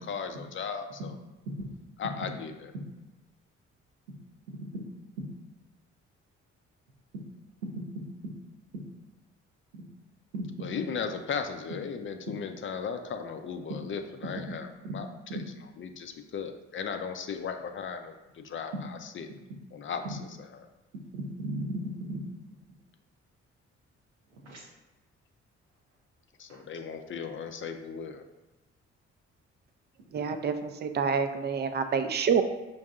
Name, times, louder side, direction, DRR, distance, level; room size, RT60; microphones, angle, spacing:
voice 1, 0.1-1.0 2.0-2.5 10.6-14.7 14.9-15.1 15.8-18.7 19.2-19.3 19.7-20.0 26.4-28.2, left 6 dB, 35° left, 6 dB, 0.4 m, -36 dB
voice 2, 4.5-4.8 5.2-5.3 7.6-8.3 8.7-8.8 9.7-9.8 10.3-10.7 14.8-14.9 15.3-15.4 20.0-20.1 21.1-22.2 24.3-24.7 26.5-26.6, right 1 dB, 90° right, -1 dB, 0.6 m, -37 dB
voice 3, 30.1-32.4, right 6 dB, 30° right, 9 dB, 0.4 m, -27 dB
5.2 x 2.6 x 2.4 m, 1.0 s
hypercardioid pair, 40°, 34 cm